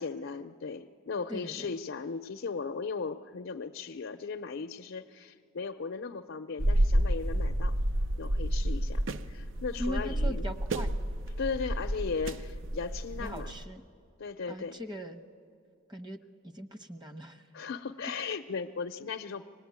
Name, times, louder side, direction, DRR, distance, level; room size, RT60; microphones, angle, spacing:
voice 1, 0.0-7.7 8.2-10.6 11.4-13.5 14.2-14.8 17.5-19.5, left 5 dB, 70° left, 6 dB, 0.6 m, -37 dB
voice 2, 1.3-1.7 9.8-10.9 13.2-13.8 14.5-15.2 15.9-17.5 18.0-18.1, equal, 25° right, 7 dB, 1.1 m, -40 dB
sound 1, 6.6-13.6, right 1 dB, 70° right, 0.6 m, -30 dB
25.0 x 19.5 x 9.4 m, 2.5 s
head